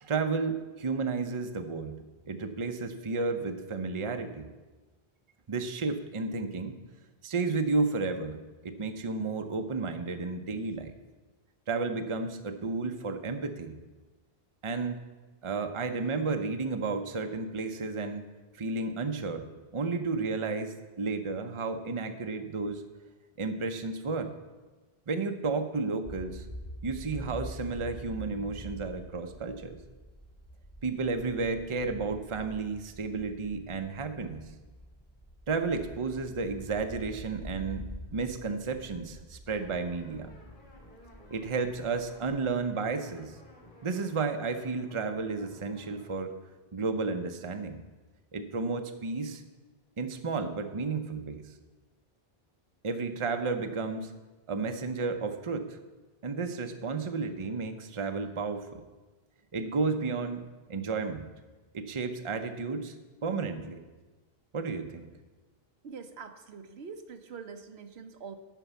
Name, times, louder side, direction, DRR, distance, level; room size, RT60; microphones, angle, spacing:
voice 1, 0.0-4.5 5.5-6.7 7.2-10.9 11.7-13.8 14.6-15.0 15.4-18.2 18.5-19.5 19.7-22.8 23.4-24.3 25.1-26.5 26.8-29.8 30.8-34.5 35.5-40.3 41.3-43.4 43.8-46.3 46.7-47.8 48.3-49.4 50.0-51.5 52.8-54.1 54.5-55.8 56.2-58.8 59.5-60.4 60.7-61.3 61.7-62.9 63.2-63.8 64.5-65.1, right 4 dB, 35° right, 7 dB, 0.7 m, -32 dB
sound 1, 26.0-42.9, equal, 15° left, 0.7 m, -46 dB
sound 2, 39.6-46.2, equal, 55° left, 2.7 m, -55 dB
voice 2, 65.8-68.4, right 5 dB, 80° right, 8 dB, 1.0 m, -44 dB
11.5 x 4.6 x 8.2 m, 1.2 s
omnidirectional pair, 1.0 m